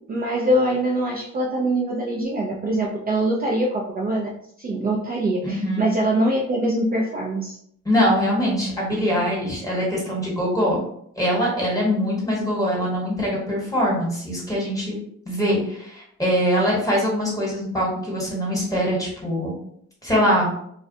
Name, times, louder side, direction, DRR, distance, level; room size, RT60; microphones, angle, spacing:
voice 1, 0.1-4.3 4.6-7.6, right 1 dB, 30° right, -2 dB, 0.4 m, -23 dB
voice 2, 5.4-5.8 7.8-10.8 11.2-15.0 15.2-19.5 20.0-20.5, equal, 10° left, -4 dB, 1.2 m, -23 dB
2.4 x 2.1 x 2.6 m, 0.67 s
cardioid pair, 90°, 30 cm